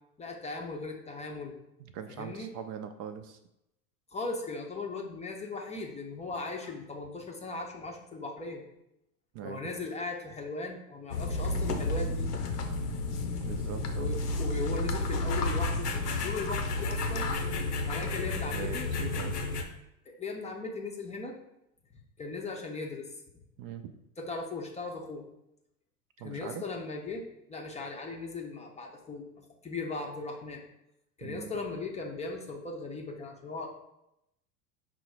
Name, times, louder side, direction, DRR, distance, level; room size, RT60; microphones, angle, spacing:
voice 1, 0.2-1.6 2.1-2.5 4.1-8.6 9.4-12.3 14.0-17.3 17.8-18.9 20.1-21.3 22.2-23.1 24.2-25.2 26.2-30.6 31.2-33.7, left 3 dB, 15° left, 1 dB, 0.5 m, -38 dB
voice 2, 1.8-3.4 9.3-9.6 13.4-14.1 18.5-19.4 23.6-23.9 26.2-26.6 31.2-31.5, right 8 dB, 50° right, 8 dB, 0.5 m, -41 dB
sound 1, 11.1-19.6, left 2 dB, 90° left, 0.7 m, -31 dB
5.3 x 2.0 x 4.6 m, 0.84 s
hypercardioid pair, 90°, 45 cm